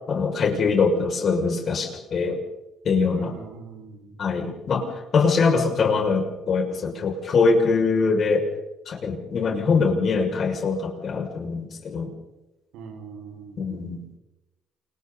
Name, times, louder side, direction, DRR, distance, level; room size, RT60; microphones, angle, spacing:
voice 1, 0.1-2.4 2.8-3.3 4.2-8.5 8.9-12.1 13.6-14.0, left 4 dB, 50° left, 2 dB, 6.3 m, -23 dB
voice 2, 3.1-4.2 12.7-13.8, right 4 dB, 70° right, 3 dB, 5.6 m, -42 dB
30.0 x 27.5 x 4.2 m, 1.0 s
hypercardioid pair, 55°, 0 cm